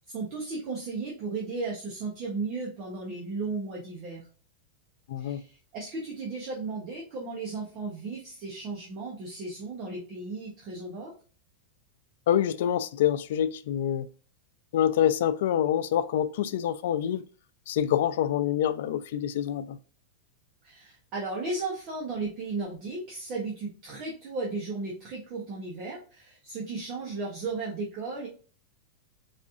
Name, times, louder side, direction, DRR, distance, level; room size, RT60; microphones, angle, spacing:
voice 1, 0.1-4.3 5.2-11.1 20.6-28.3, right 3 dB, 30° right, 0.8 m, -35 dB
voice 2, 5.1-5.4 12.3-14.1 14.7-17.2 17.7-19.8, left 10 dB, 60° left, 0.3 m, -26 dB
4.1 x 2.6 x 2.4 m
supercardioid pair, 170°, 0 cm